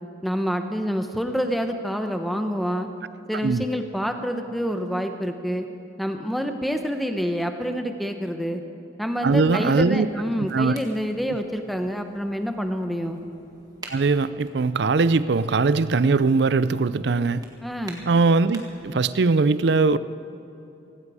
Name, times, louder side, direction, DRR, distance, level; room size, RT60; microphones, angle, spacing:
voice 1, 0.2-2.9 3.3-5.7 6.0-8.6 9.0-13.2 17.6-18.0, equal, ahead, 6 dB, 0.8 m, -27 dB
voice 2, 9.2-10.1 10.4-10.7 13.9-17.4 18.1-20.0, right 4 dB, 65° right, 15 dB, 0.5 m, -20 dB
sound 1, 9.6-18.9, right 2 dB, 20° right, 1.7 m, -49 dB
17.5 x 16.5 x 4.9 m, 2.9 s
head